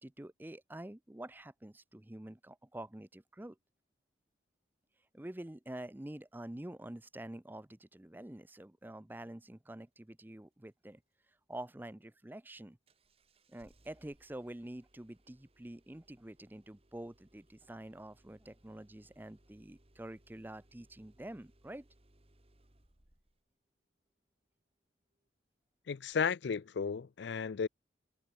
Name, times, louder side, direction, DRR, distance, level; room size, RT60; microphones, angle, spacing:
voice 1, 0.0-3.6 5.1-11.0 11.5-12.8 13.5-21.9, right 1 dB, 10° right, 0.5 m, -47 dB
Engine starting, 12.9-23.5 26.1-26.2, right 1 dB, 30° right, 2.3 m, -68 dB
voice 2, 25.9-27.7, left 6 dB, 70° left, 0.4 m, -34 dB
head